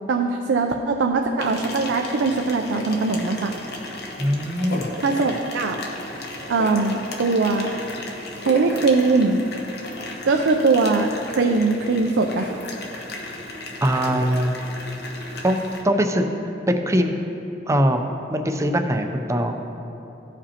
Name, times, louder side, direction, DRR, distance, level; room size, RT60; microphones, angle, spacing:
voice 1, 0.1-3.5 5.0-5.8 6.5-7.7 8.4-9.4 10.2-12.5, right 3 dB, 80° right, 3 dB, 0.4 m, -21 dB
sound 1, 1.4-15.8, left 2 dB, 60° left, 0.9 m, -34 dB
voice 2, 4.2-4.9 13.8-14.5 15.4-16.2 16.7-17.1 17.7-18.0 18.3-19.6, equal, 15° right, 5 dB, 0.5 m, -21 dB
15.0 x 5.1 x 2.8 m, 2.9 s
head